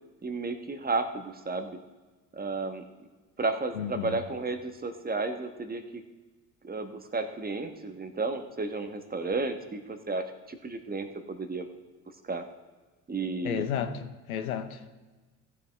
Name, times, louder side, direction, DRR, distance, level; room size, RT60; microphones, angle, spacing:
voice 1, 0.2-1.8 2.3-2.8 3.4-6.0 6.6-11.7 12.2-12.4 13.1-13.7, right 3 dB, 20° right, 1.2 m, -33 dB
voice 2, 3.7-4.2 13.4-14.8, left 8 dB, 90° left, 0.8 m, -32 dB
16.0 x 7.2 x 3.5 m
hypercardioid pair, 65°, 42 cm